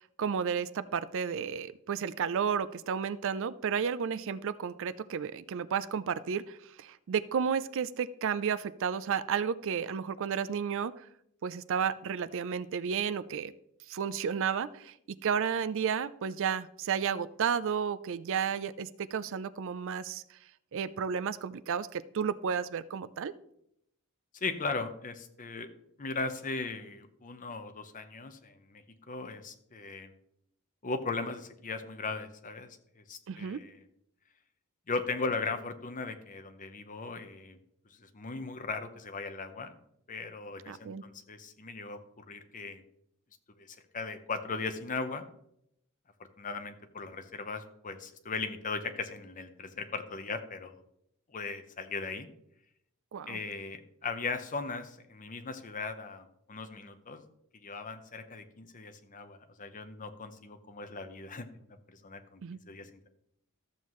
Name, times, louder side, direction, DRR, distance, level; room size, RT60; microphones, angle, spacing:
voice 1, 0.2-11.0 11.4-13.5 13.9-14.9 15.2-20.2 20.7-23.3 33.3-33.6 40.7-41.0 53.1-53.4 62.4-62.6, right 7 dB, 60° right, 17 dB, 0.4 m, -32 dB
voice 2, 24.3-25.7 26.0-30.1 30.8-33.8 34.9-37.6 38.0-39.7 40.1-42.8 43.6-45.3 46.4-50.8 51.3-52.3 53.3-57.2 57.6-63.1, left 4 dB, 40° left, 8 dB, 0.8 m, -38 dB
13.0 x 7.3 x 3.1 m, 0.76 s
head